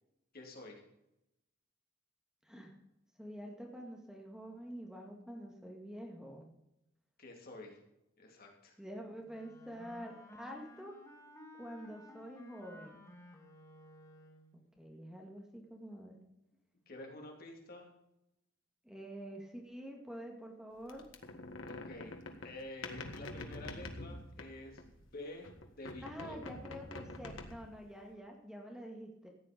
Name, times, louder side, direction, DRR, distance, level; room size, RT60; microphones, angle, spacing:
voice 1, 0.3-0.8 7.2-7.8 8.2-8.8 16.9-17.9 21.7-26.4, left 1 dB, 50° left, 1 dB, 3.0 m, -49 dB
voice 2, 3.2-6.5 8.8-11.0 11.6-13.0 14.5-16.2 18.8-21.1 26.0-29.3, equal, 5° right, 1 dB, 2.0 m, -47 dB
Wind instrument woodwind instrument, 9.2-14.6, left 1 dB, 15° left, 2.2 m, -55 dB
sound 1, 20.9-25.1 25.4-27.8, left 2 dB, 85° left, 1.7 m, -46 dB
14.5 x 9.5 x 5.2 m, 0.85 s
head